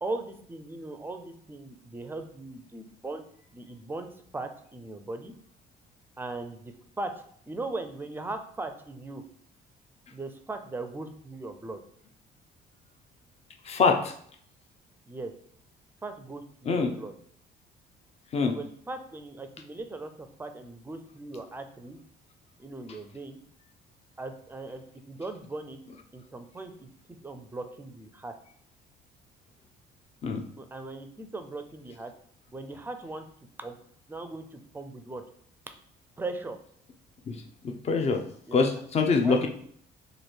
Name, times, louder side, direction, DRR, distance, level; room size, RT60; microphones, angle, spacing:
voice 1, 0.0-3.2 3.5-5.3 6.2-7.1 7.5-9.2 10.1-11.8 15.0-15.3 16.0-17.1 18.4-22.0 22.6-23.4 24.2-25.8 26.1-26.9 27.2-28.3 30.6-32.1 32.5-33.3 33.6-33.8 34.1-35.2 36.2-36.6 38.5-38.7 39.2-39.5, right 2 dB, 10° right, 7 dB, 0.4 m, -38 dB
voice 2, 13.6-14.1 16.7-16.9 18.3-18.5 30.2-30.4 37.3-37.4 37.6-38.2 38.5-39.5, left 4 dB, 40° left, 4 dB, 0.6 m, -24 dB
3.1 x 2.5 x 4.3 m, 0.63 s
cardioid pair, 110°, 17 cm